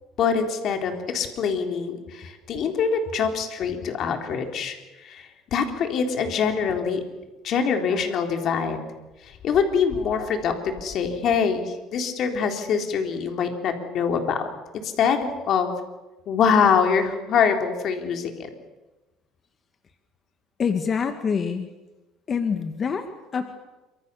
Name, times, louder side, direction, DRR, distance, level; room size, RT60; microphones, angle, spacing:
voice 1, 0.2-4.8 5.0-7.0 7.4-8.8 9.2-14.5 14.7-15.2 15.5-15.7 16.3-18.5, left 6 dB, 55° left, 5 dB, 3.7 m, -24 dB
voice 2, 20.6-21.7 22.3-23.6, left 6 dB, 35° left, 7 dB, 1.8 m, -26 dB
27.5 x 25.0 x 7.1 m, 1.1 s
cardioid pair, 115°, 0 cm